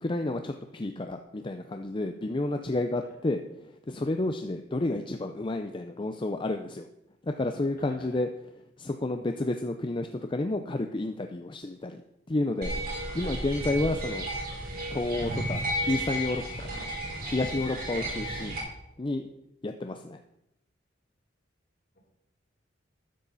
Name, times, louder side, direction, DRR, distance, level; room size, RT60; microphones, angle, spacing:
voice 1, 0.0-6.9 7.2-8.3 8.6-12.0 12.3-14.3 14.9-16.7 17.2-18.5 19.0-19.3 19.6-20.2, left 2 dB, 25° left, 6 dB, 0.5 m, -31 dB
voice 2, 7.8-8.2 12.9-13.9, left 1 dB, 55° left, -2 dB, 3.6 m, -53 dB
sound 1, 12.6-18.6, equal, 50° right, 3.3 m, -33 dB
13.0 x 10.0 x 4.1 m, 0.84 s
head